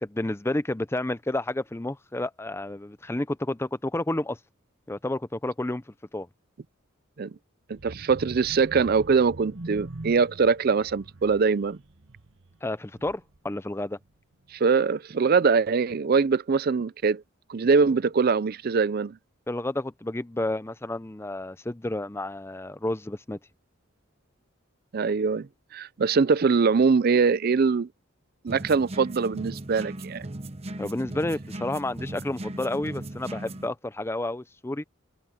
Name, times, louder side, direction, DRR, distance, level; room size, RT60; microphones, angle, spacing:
voice 1, 0.0-4.4 4.9-5.8 6.1-6.3 12.6-14.0 19.5-23.4 30.8-34.8, left 1 dB, 10° left, 0.5 m, -30 dB
voice 2, 7.7-11.8 14.5-17.2 17.5-19.2 24.9-27.9 28.4-30.3, right 5 dB, 50° right, 0.4 m, -23 dB
sound 1, 7.7-13.5 13.9-14.1 14.4-14.5, right 2 dB, 65° right, 1.2 m, -43 dB
sound 2, 28.5-33.7, right 1 dB, 30° right, 0.9 m, -37 dB
head